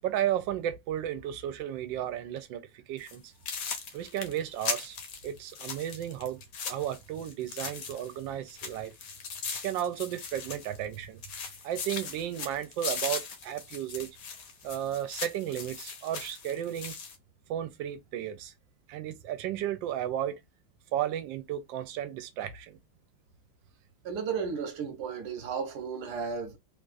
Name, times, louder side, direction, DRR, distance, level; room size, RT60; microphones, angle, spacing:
voice 1, 0.0-3.3 3.9-5.0 5.2-6.4 6.7-8.9 9.6-11.2 11.6-14.1 14.6-16.9 17.5-18.5 18.9-20.4 20.9-22.8, right 11 dB, 80° right, 1.3 m, -33 dB
sound 1, 3.0-3.2 3.5-8.2 8.5-11.0 11.2-17.2, left 5 dB, 60° left, 1.0 m, -39 dB
voice 2, 24.0-26.6, right 6 dB, 65° right, 1.3 m, -34 dB
3.5 x 2.3 x 2.5 m
omnidirectional pair, 2.0 m